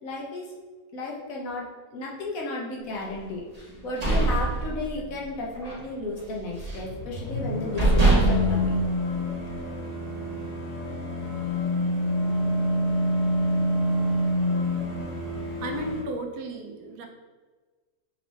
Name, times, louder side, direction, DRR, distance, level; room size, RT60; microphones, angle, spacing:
voice 1, 0.0-0.5 0.9-8.8, left 2 dB, 60° left, -2 dB, 1.3 m, -33 dB
sound 1, 3.7-5.2 5.6-5.8 6.2-6.9 7.4-7.5 7.8-9.6, right 2 dB, 25° right, 1.1 m, -23 dB
sound 2, 6.5-16.0, left 1 dB, 85° left, 1.5 m, -27 dB
voice 2, 15.6-17.1, right 3 dB, 80° right, 2 dB, 1.3 m, -34 dB
5.4 x 2.8 x 3.2 m, 1.3 s
omnidirectional pair, 1.7 m